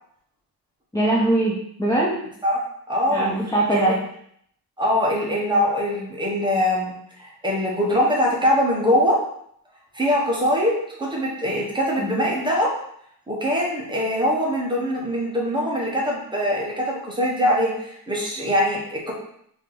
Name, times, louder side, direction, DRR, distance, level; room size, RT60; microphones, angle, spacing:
voice 1, 0.9-2.2 3.1-4.0 12.0-12.1, right 1 dB, 10° left, -4 dB, 0.5 m, -21 dB
voice 2, 2.9-3.3 3.7-3.9 4.8-9.2 9.9-10.7 11.0-12.7 13.3-19.1, equal, 10° right, -3 dB, 0.9 m, -22 dB
3.6 x 2.8 x 3.7 m, 0.69 s
wide cardioid pair, 140°, 38 cm